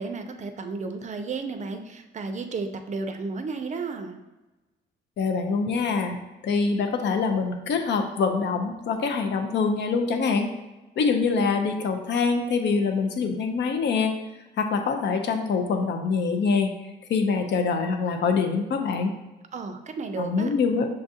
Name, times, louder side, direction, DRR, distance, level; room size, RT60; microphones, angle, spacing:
voice 1, 0.0-4.2 19.5-20.5, right 4 dB, 35° right, 7 dB, 0.5 m, -33 dB
voice 2, 5.2-10.5 11.0-14.1 14.6-16.7 17.1-19.1 20.2-20.9, left 5 dB, 65° left, 5 dB, 0.6 m, -24 dB
6.4 x 2.3 x 2.7 m, 1.1 s
cardioid pair, 90°, 20 cm